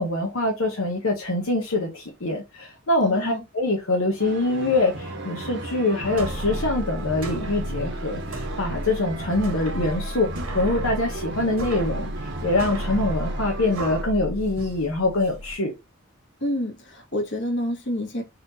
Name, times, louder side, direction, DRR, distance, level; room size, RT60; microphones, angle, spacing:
voice 1, 0.0-10.3 10.5-12.1 12.4-15.7, left 2 dB, 80° left, 1.1 m, -24 dB
voice 2, 3.0-3.4 16.4-18.2, left 1 dB, 55° left, 1.6 m, -28 dB
sound 1, 4.2-14.0, right 2 dB, 55° right, 1.0 m, -35 dB
sound 2, 6.0-15.5, equal, 85° right, 1.6 m, -33 dB
4.2 x 2.6 x 4.0 m
head